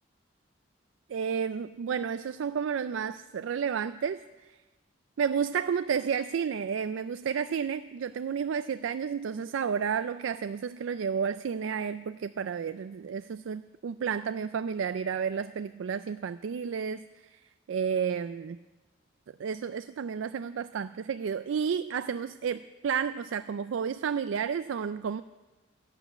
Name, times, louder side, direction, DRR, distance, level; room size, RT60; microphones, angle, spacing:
voice 1, 1.1-4.2 5.2-17.0 17.3-17.4 17.7-18.6 19.4-25.2, right 7 dB, 85° right, 12 dB, 0.4 m, -31 dB
13.0 x 8.1 x 9.1 m, 1.2 s
head